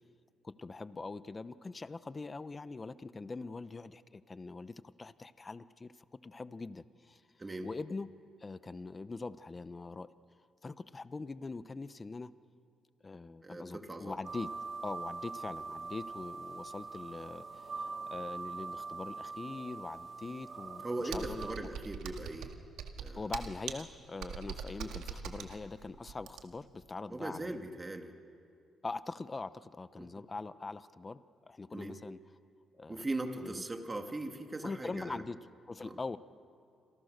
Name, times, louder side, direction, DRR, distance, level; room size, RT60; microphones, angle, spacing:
voice 1, 0.4-5.9 6.2-7.2 7.6-8.1 8.4-10.1 10.6-12.3 13.0-14.5 14.8-20.9 21.1-21.5 23.1-27.6 28.8-32.2 32.7-33.0 33.4-33.6 34.6-35.4 35.7-36.2, left 3 dB, 25° left, 14 dB, 0.9 m, -42 dB
voice 2, 7.4-7.7 13.4-14.2 20.8-22.5 23.0-23.2 27.1-28.1 30.0-30.1 31.7-32.0 32.9-35.2 35.8-36.0, right 2 dB, 20° right, 4 dB, 2.4 m, -39 dB
sound 1, 14.2-21.6, right 4 dB, 40° right, 2.9 m, -43 dB
Computer keyboard, 21.1-26.7, right 7 dB, 85° right, 2.2 m, -42 dB
27.5 x 27.5 x 6.7 m, 2.5 s
cardioid pair, 90°, 0 cm